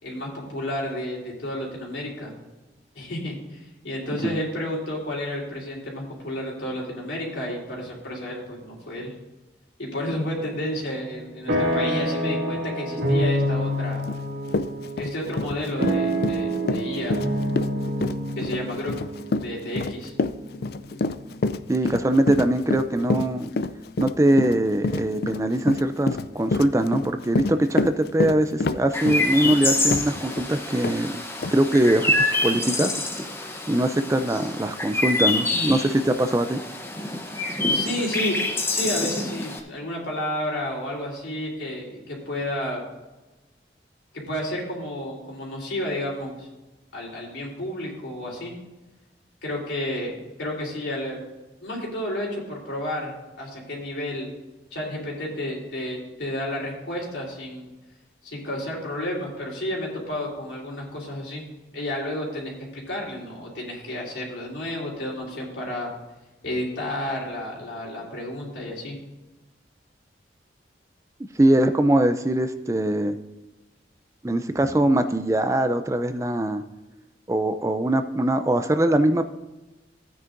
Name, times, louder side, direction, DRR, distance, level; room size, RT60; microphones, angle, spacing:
voice 1, 0.0-2.3 3.0-9.1 9.8-14.0 15.0-17.2 18.3-18.9 19.4-20.1 37.7-38.4 38.7-42.8 44.1-46.5 46.9-48.5 49.4-51.2 51.6-54.3 54.7-57.7 58.2-61.4 61.7-65.9 66.4-68.9 74.6-74.7, left 1 dB, 80° left, -2 dB, 3.6 m, -31 dB
sound 1, 10.1-10.7 11.0-21.0, equal, 80° right, 2.2 m, -27 dB
Run, 14.1-14.2 14.5-30.5 30.8-31.0 31.4-31.5, left 3 dB, 55° left, 0.4 m, -27 dB
voice 2, 21.7-23.5 24.0-31.2 31.5-32.9 33.7-36.6 71.4-73.2 74.2-76.6 77.3-79.2, right 1 dB, 15° right, 9 dB, 0.4 m, -22 dB
Chirp tweet, 28.9-39.6, left 2 dB, 15° left, 0.8 m, -27 dB
15.0 x 9.4 x 2.6 m, 1.1 s
head